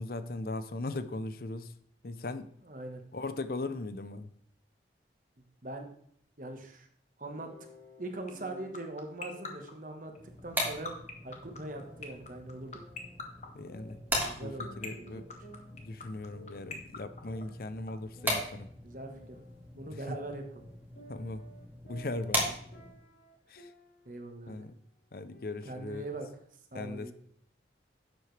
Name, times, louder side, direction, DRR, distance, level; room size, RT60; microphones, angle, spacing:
voice 1, 0.0-1.7 2.0-2.5 3.1-4.3 13.5-14.0 14.4-15.3 15.7-18.7 20.1-20.2 21.1-21.4 21.9-22.5 23.5-23.7 24.5-24.7 25.1-26.0 26.7-27.1, left 2 dB, 55° left, 12 dB, 0.6 m, -38 dB
voice 2, 2.6-3.0 5.4-5.8 6.4-6.9 7.2-7.5 8.0-10.1 10.4-10.9 11.2-12.8 14.2-15.4 18.8-19.4 19.7-20.7 22.4-22.5 24.0-24.6 25.6-26.3 26.7-27.1, right 2 dB, 50° right, 4 dB, 1.4 m, -42 dB
sound 1, 7.3-8.8 9.3-9.8 10.6-12.3 12.7-14.3 14.6-16.8 17.2-19.7 20.0-24.1 24.4-24.8 25.3-26.3, right 1 dB, 85° left, 4.4 m, -55 dB
sound 2, 8.3-17.9, left 5 dB, 40° left, 1.4 m, -40 dB
sound 3, 10.2-23.1, equal, 10° right, 1.9 m, -39 dB
10.5 x 7.7 x 3.3 m, 0.65 s
head